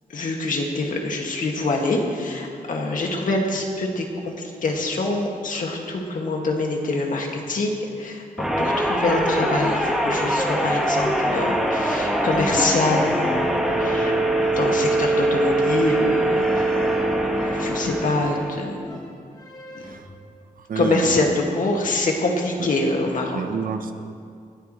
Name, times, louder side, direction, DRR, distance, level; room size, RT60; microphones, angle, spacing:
voice 1, 0.1-14.1 14.6-16.7 17.4-19.0 19.7-19.8 20.8-23.4, left 2 dB, 65° left, 0 dB, 2.2 m, -25 dB
sound 1, 8.4-18.7, right 1 dB, 5° right, 1.6 m, -22 dB
sound 2, 9.5-20.2, left 2 dB, 25° left, 2.0 m, -42 dB
voice 2, 19.8-20.1 20.6-21.2 22.6-22.7 23.3-23.9, right 6 dB, 70° right, 7 dB, 0.9 m, -29 dB
20.5 x 13.5 x 3.2 m, 2.3 s
wide cardioid pair, 105°, 15 cm